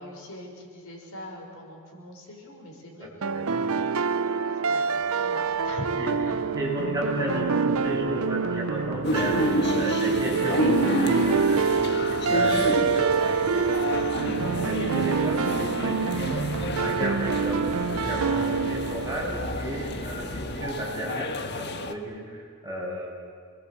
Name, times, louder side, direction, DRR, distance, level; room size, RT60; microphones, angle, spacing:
voice 1, 0.0-3.5 4.4-6.3, left 1 dB, 75° left, 0 dB, 6.0 m, -41 dB
voice 2, 3.0-3.6 6.0-6.1 6.6-23.1, right 1 dB, 15° right, -4 dB, 7.4 m, -33 dB
sound 1, 3.2-20.1, right 5 dB, 70° right, 0.7 m, -26 dB
sound 2, 5.0-20.7, left 1 dB, 35° left, 2.4 m, -43 dB
sound 3, 9.0-21.9, left 1 dB, 50° left, 1.4 m, -31 dB
29.0 x 21.0 x 8.6 m, 2.3 s
head